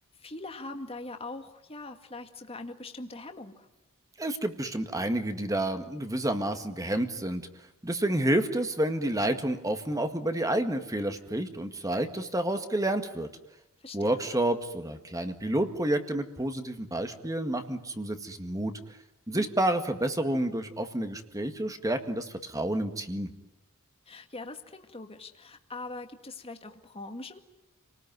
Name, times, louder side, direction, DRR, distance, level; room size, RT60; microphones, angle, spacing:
voice 1, 0.2-3.7 13.8-14.2 19.3-19.5 24.1-27.4, left 2 dB, 25° left, 6 dB, 2.0 m, -42 dB
voice 2, 4.2-7.5 7.8-13.3 13.9-18.7 19.3-23.3, right 1 dB, 15° right, 7 dB, 1.9 m, -29 dB
29.5 x 19.5 x 9.3 m, 0.94 s
head